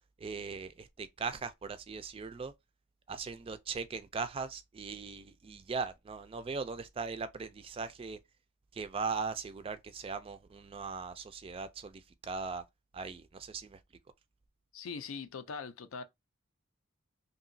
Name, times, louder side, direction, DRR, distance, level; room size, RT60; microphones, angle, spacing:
voice 1, 0.2-2.5 3.1-8.2 8.7-12.6 12.9-13.8, right 5 dB, 25° right, 0.3 m, -39 dB
voice 2, 14.7-16.0, left 5 dB, 90° left, 0.5 m, -41 dB
2.9 x 2.7 x 2.6 m
head